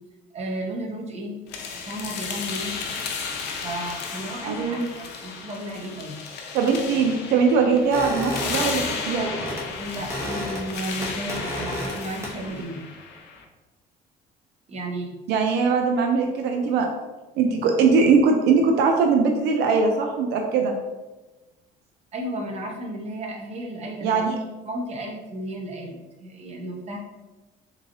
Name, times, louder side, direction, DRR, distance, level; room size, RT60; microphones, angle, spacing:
voice 1, 0.3-1.4 1.9-2.8 3.6-6.2 9.8-12.8 14.7-15.1 22.1-24.3 24.7-27.0, right 1 dB, 40° right, 0 dB, 0.8 m, -33 dB
sound 1, 1.5-13.4, left 5 dB, 85° left, 0.6 m, -34 dB
voice 2, 4.5-4.8 6.5-9.3 15.3-16.9 17.4-20.8 24.0-24.4, right 5 dB, 85° right, 3 dB, 0.5 m, -21 dB
sound 2, 7.9-9.7 9.9-10.7 11.0-12.0 12.2-12.6, equal, 15° right, 1.0 m, -31 dB
3.8 x 3.0 x 2.6 m, 1.1 s
cardioid pair, 110°, 17 cm